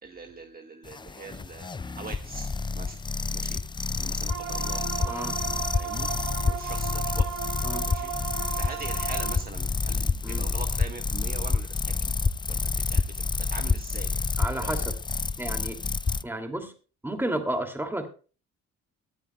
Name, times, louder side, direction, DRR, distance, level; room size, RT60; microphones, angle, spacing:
voice 1, 0.0-3.0 3.3-3.6 4.0-5.3 5.7-6.1 6.4-7.4 7.8-8.1 8.5-11.9 12.5-13.0 13.4-14.3 14.5-14.7, right 4 dB, 30° right, 4 dB, 1.4 m, -42 dB
sound 1, 0.8-16.2, left 4 dB, 15° left, 0.4 m, -29 dB
sound 2, 4.3-9.4, right 9 dB, 65° right, 1.4 m, -35 dB
voice 2, 5.0-5.3 7.6-7.8 10.2-10.4 14.4-15.0 15.4-15.8 16.2-16.7 17.0-18.1, right 1 dB, 5° right, 4 dB, 2.5 m, -31 dB
23.0 x 8.4 x 2.3 m, 0.36 s
cardioid pair, 90°, 30 cm